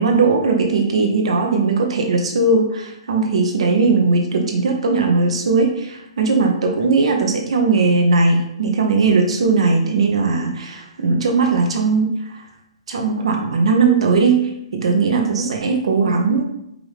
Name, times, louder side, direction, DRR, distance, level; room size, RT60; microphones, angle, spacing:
voice 1, 0.0-12.4 12.9-16.4, right 4 dB, 65° right, 2 dB, 0.7 m, -18 dB
4.9 x 2.5 x 3.2 m, 0.78 s
hypercardioid pair, 170°, 3 cm